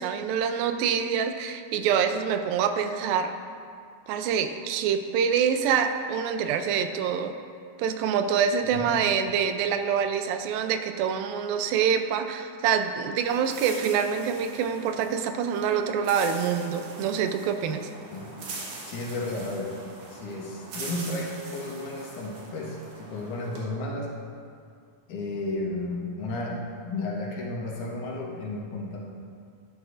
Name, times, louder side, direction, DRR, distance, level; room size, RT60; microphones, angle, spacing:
voice 1, 0.0-3.4 4.1-7.3 7.8-17.9, right 7 dB, 85° right, 8 dB, 2.4 m, -26 dB
voice 2, 8.7-9.0 18.1-18.3 18.8-19.8 20.1-24.1 25.1-29.0, left 2 dB, 70° left, -2 dB, 2.2 m, -33 dB
sound 1, 13.3-23.6, right 3 dB, 65° right, 2.8 m, -42 dB
12.0 x 11.0 x 2.5 m, 2.3 s
omnidirectional pair, 4.1 m